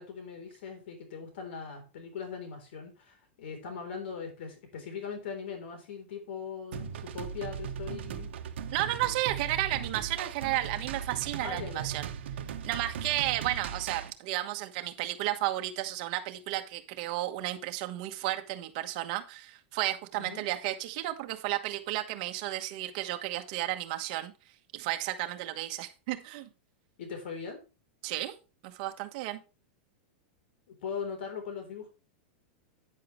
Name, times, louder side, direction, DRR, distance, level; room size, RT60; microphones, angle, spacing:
voice 1, 0.0-8.3 11.4-11.9 20.2-20.4 27.0-27.6 30.7-31.9, left 6 dB, 70° left, 5 dB, 3.6 m, -40 dB
sound 1, 6.7-14.1, right 8 dB, 85° right, 1.1 m, -38 dB
voice 2, 8.7-12.1 12.6-24.3 24.7-26.5 28.0-28.4 28.6-29.4, right 15 dB, 40° right, 7 dB, 1.2 m, -33 dB
9.5 x 9.3 x 3.2 m, 0.32 s
supercardioid pair, 170°, 6 cm